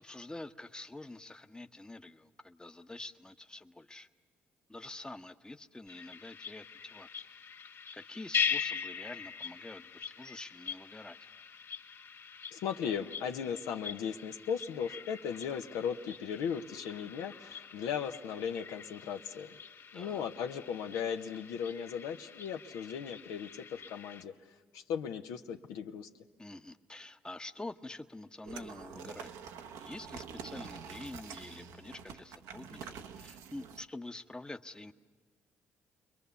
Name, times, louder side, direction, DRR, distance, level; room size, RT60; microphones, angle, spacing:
voice 1, 0.0-4.1 4.7-7.3 7.9-11.2 19.9-20.2 26.4-29.4 29.8-34.9, left 2 dB, 15° left, 8 dB, 0.9 m, -47 dB
sound 1, 5.9-24.2, left 7 dB, 55° left, 2.2 m, -42 dB
voice 2, 12.5-19.6 19.9-24.3 24.7-26.1, left 7 dB, 80° left, 5 dB, 0.9 m, -37 dB
sound 2, 28.4-33.8, right 6 dB, 80° right, 0.9 m, -46 dB
30.0 x 22.0 x 7.0 m, 1.4 s
hypercardioid pair, 55°, 6 cm